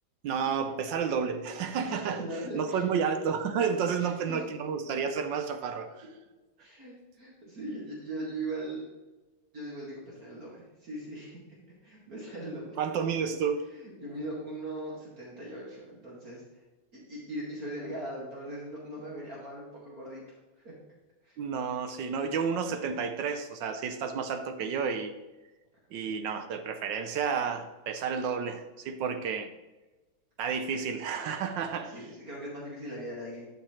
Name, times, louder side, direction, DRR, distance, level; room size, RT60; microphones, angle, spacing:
voice 1, 0.2-2.2 2.5-5.9 12.8-13.6 21.4-25.1 25.9-29.5 30.4-32.0, right 6 dB, 70° right, 8 dB, 1.2 m, -31 dB
voice 2, 1.8-2.8 4.0-4.4 6.6-8.8 9.5-11.4 11.8-12.8 13.7-16.6 16.9-20.2 20.6-20.7 21.2-21.4 31.8-33.5, right 1 dB, 45° right, -5 dB, 2.4 m, -40 dB
11.5 x 5.8 x 3.1 m, 1.1 s
omnidirectional pair, 2.2 m